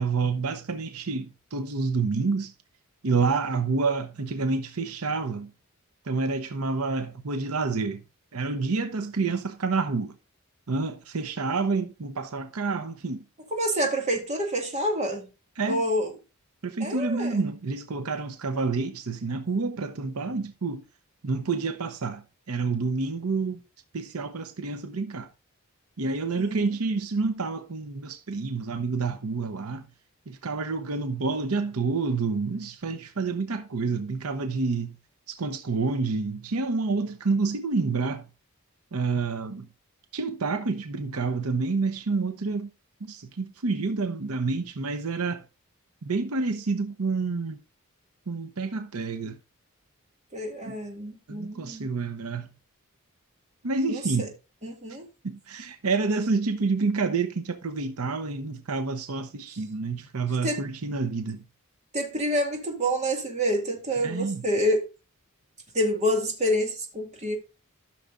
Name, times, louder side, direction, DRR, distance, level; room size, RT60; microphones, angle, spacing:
voice 1, 0.0-2.5 3.0-5.5 6.0-8.0 8.3-10.1 10.7-13.2 15.6-15.8 16.6-20.8 21.2-23.6 23.9-25.3 26.0-29.9 30.3-35.0 35.3-38.3 38.9-39.7 40.1-42.7 43.0-45.4 46.0-47.6 48.3-49.4 50.7-50.8 51.3-52.5 53.6-54.3 55.2-61.5 64.0-64.4, right 4 dB, 80° right, 0.8 m, -28 dB
voice 2, 13.5-15.2 15.7-16.1 16.8-17.4 26.4-26.7 50.3-51.9 53.9-54.0 54.6-55.1 60.4-60.6 61.9-64.9 65.7-67.4, equal, 30° right, 2.0 m, -27 dB
13.5 x 6.3 x 2.5 m
head